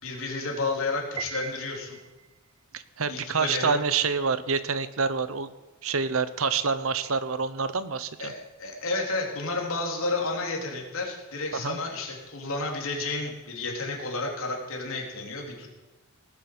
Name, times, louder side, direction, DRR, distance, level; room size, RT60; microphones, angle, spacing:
voice 1, 0.0-2.0 3.1-3.8 8.2-8.3 8.6-15.7, left 3 dB, 65° left, 0 dB, 3.7 m, -31 dB
Piano, 1.2-2.5, right 6 dB, 20° right, 0.5 m, -39 dB
voice 2, 2.7-5.5 5.8-8.3 11.5-11.8, right 5 dB, 65° right, 13 dB, 0.9 m, -27 dB
19.0 x 8.2 x 7.9 m, 1.1 s
head